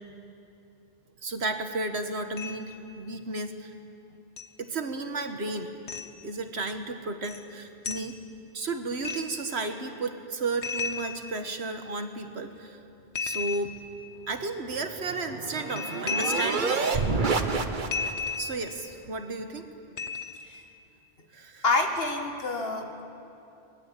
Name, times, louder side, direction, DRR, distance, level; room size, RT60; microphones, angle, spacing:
voice 1, 1.2-3.7 4.6-5.7 6.2-8.2 8.5-12.8 13.2-13.8 14.3-17.1 18.4-19.7 21.3-21.6, right 3 dB, 70° right, 7 dB, 1.7 m, -33 dB
sound 1, 2.4-2.8 4.4-4.5 5.9-6.1 7.2-7.4 7.8-8.1 9.0-9.5 10.6-11.7 13.2-14.0 15.6-16.8 17.9-18.7 20.0-20.5, left 5 dB, 80° left, 1.6 m, -34 dB
sound 2, 14.7-18.3, right 4 dB, 50° right, 1.2 m, -29 dB
voice 2, 21.6-23.0, left 3 dB, 60° left, 4 dB, 2.1 m, -27 dB
24.0 x 20.0 x 8.4 m, 2.8 s
omnidirectional pair, 1.1 m